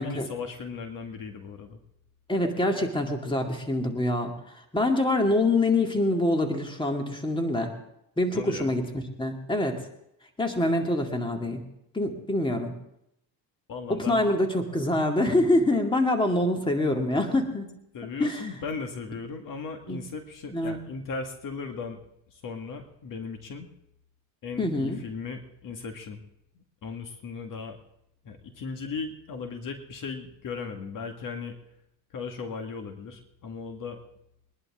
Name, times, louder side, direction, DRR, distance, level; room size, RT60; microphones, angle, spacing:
voice 1, 0.0-1.8 8.3-8.7 13.7-14.2 17.9-22.0 22.3-23.7 24.4-26.2 26.6-27.8 28.2-31.6 32.1-34.0, left 5 dB, 50° left, 5 dB, 1.9 m, -37 dB
voice 2, 2.3-4.3 4.7-7.7 8.2-9.8 10.4-11.6 11.9-12.7 13.9-17.7 18.2-18.5 19.9-20.0 20.5-20.8 24.6-25.0, left 1 dB, 10° left, 3 dB, 2.3 m, -25 dB
22.5 x 11.0 x 3.6 m, 0.79 s
supercardioid pair, 95°, 41 cm